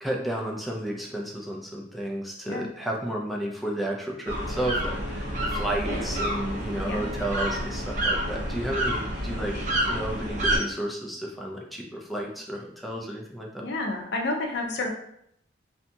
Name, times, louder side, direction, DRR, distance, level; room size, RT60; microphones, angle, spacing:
voice 1, 0.0-9.6 9.9-13.7, right 1 dB, ahead, -2 dB, 0.4 m, -32 dB
sound 1, 4.3-10.6, right 1 dB, 45° right, 0.6 m, -29 dB
voice 2, 13.6-14.9, left 2 dB, 65° left, 1 dB, 0.5 m, -30 dB
2.7 x 2.6 x 2.2 m, 0.72 s
head